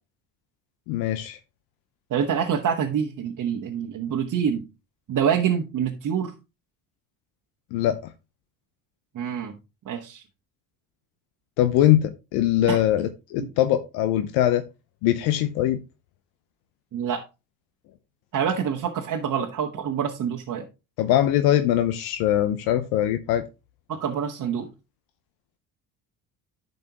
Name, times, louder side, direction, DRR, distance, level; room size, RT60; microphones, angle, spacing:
voice 1, 0.9-1.4 7.7-8.1 11.6-14.6 15.0-15.8 21.0-23.4, left 12 dB, 85° left, 9 dB, 0.7 m, -22 dB
voice 2, 2.1-4.6 5.1-6.3 9.1-9.5 9.9-10.2 12.7-12.8 13.4-13.5 16.9-17.2 18.3-20.6 23.9-24.7, right 8 dB, 55° right, 0 dB, 1.2 m, -26 dB
10.5 x 5.5 x 2.9 m, 0.27 s
supercardioid pair, 80°, 38 cm